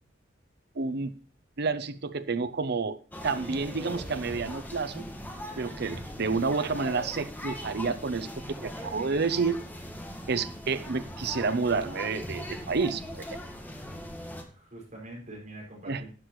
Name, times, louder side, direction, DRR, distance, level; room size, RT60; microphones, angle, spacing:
voice 1, 0.8-1.1 1.6-3.0 3.2-5.1 5.6-8.3 8.6-9.6 10.3-13.2 15.9-16.0, right 4 dB, 55° right, 12 dB, 0.7 m, -29 dB
sound 1, 3.1-14.4, equal, 10° left, 1.4 m, -40 dB
voice 2, 14.5-16.1, right 1 dB, 40° right, -3 dB, 5.6 m, -45 dB
12.0 x 8.2 x 3.1 m, 0.39 s
head